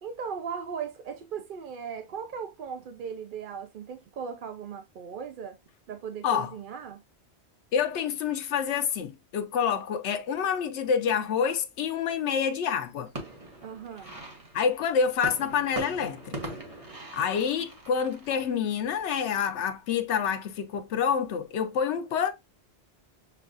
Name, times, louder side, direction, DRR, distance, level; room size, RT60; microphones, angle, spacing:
voice 1, 0.0-5.6 5.9-7.0 13.6-14.1, right 7 dB, 60° right, 0.6 m, -38 dB
voice 2, 6.2-6.5 7.7-13.1 14.5-16.6 17.1-22.3, left 7 dB, 85° left, 0.9 m, -27 dB
sound 1, 12.8-19.3 19.8-20.4 20.7-21.4, right 1 dB, 35° right, 1.1 m, -42 dB
6.8 x 2.3 x 2.4 m
omnidirectional pair, 1.1 m